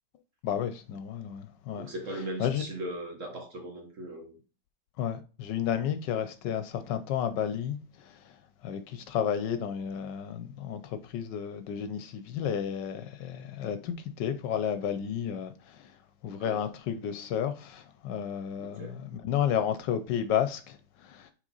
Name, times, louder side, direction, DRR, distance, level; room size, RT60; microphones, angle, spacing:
voice 1, 0.4-1.9 2.4-2.6 5.0-8.1 8.6-15.9 16.2-21.3, left 9 dB, 75° left, 1.2 m, -32 dB
voice 2, 1.8-4.4 16.4-16.6 18.6-18.9, right 1 dB, 45° right, 1.3 m, -38 dB
6.1 x 4.0 x 3.9 m
omnidirectional pair, 2.1 m